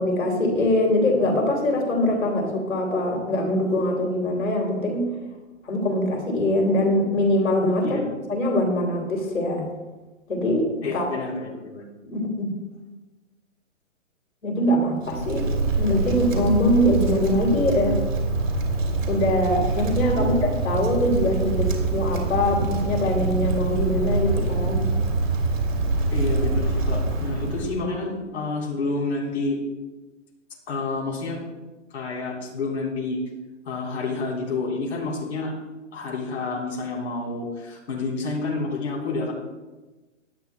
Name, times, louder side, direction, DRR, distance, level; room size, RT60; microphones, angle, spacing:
voice 1, 0.0-5.1 5.6-8.0 8.3-9.7 10.3-11.1 12.0-12.5 14.4-15.5 15.8-18.0 19.1-24.8, left 1 dB, 90° left, 1 dB, 3.3 m, -23 dB
voice 2, 10.8-11.8 20.1-20.4 26.1-29.6 30.7-31.4 31.9-33.2 33.7-35.5 35.9-39.3, left 3 dB, 60° left, -2 dB, 3.9 m, -29 dB
Wind, 15.0-27.8, right 3 dB, 80° right, 2.8 m, -25 dB
17.5 x 11.0 x 2.3 m, 1.2 s
hypercardioid pair, 145°, 39 cm